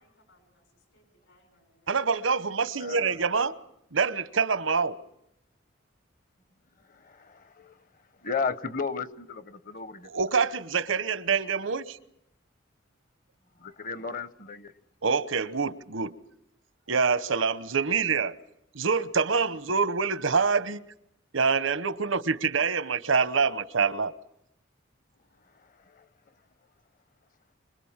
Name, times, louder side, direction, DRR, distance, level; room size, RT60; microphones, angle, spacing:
voice 1, 0.0-2.0 2.9-3.2, left 1 dB, 75° left, 7.0 m, -65 dB
voice 2, 1.9-3.5 3.9-5.0 10.1-12.0 15.0-16.1 16.9-18.3 18.7-20.8 21.3-24.1, right 5 dB, 90° right, 1.0 m, -26 dB
voice 3, 2.8-3.2 6.9-7.8 8.2-10.1 13.6-14.7 25.9-26.1, left 5 dB, 45° left, 0.9 m, -34 dB
25.5 x 21.0 x 7.4 m
head